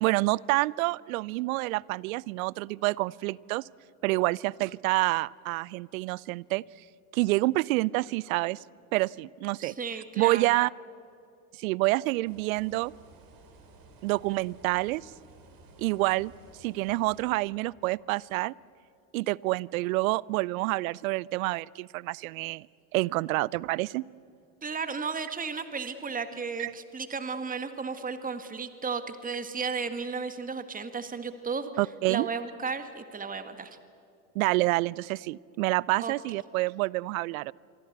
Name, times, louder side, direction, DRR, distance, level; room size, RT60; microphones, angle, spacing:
voice 1, 0.0-3.6 4.0-6.6 7.1-8.6 8.9-10.7 11.6-12.9 14.0-15.1 15.8-16.3 16.6-18.5 19.1-22.7 22.9-24.0 26.6-26.7 31.8-32.3 34.4-37.5, right 21 dB, 65° right, 26 dB, 0.6 m, -28 dB
voice 2, 9.6-10.5 24.6-31.7 32.1-33.8 36.0-36.1, right 5 dB, 20° right, 10 dB, 1.7 m, -34 dB
sound 1, 12.3-17.3, right 3 dB, 50° right, 5.1 m, -54 dB
27.5 x 24.0 x 8.0 m, 2.8 s
hypercardioid pair, 70°, 44 cm